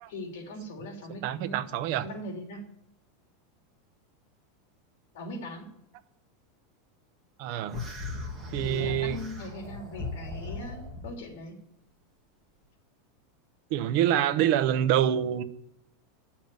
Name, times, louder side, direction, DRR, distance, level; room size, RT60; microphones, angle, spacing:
voice 1, 0.1-1.6 2.0-2.6 5.1-5.7 8.5-11.6, left 1 dB, 65° left, 3.4 m, -40 dB
voice 2, 1.2-2.1 7.4-7.8 8.5-9.2 13.7-15.4, right 11 dB, 45° right, 0.8 m, -26 dB
sound 1, 7.7-11.1, left 2 dB, 10° right, 2.3 m, -37 dB
10.5 x 7.4 x 9.4 m
supercardioid pair, 180°, 0 cm